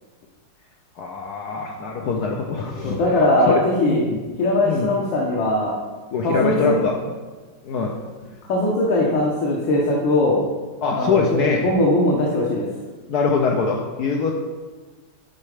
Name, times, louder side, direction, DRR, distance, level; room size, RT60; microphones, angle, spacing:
voice 1, 1.0-3.2 3.5-4.2 4.6-4.9 6.1-7.0 7.6-7.9 10.8-11.6 13.1-14.3, left 4 dB, 65° left, 0 dB, 1.2 m, -23 dB
voice 2, 2.8-4.0 4.4-5.7 6.2-6.7 8.5-10.4 10.9-12.7, left 1 dB, 90° left, -3 dB, 1.9 m, -20 dB
9.8 x 4.3 x 4.9 m, 1.3 s
omnidirectional pair, 2.0 m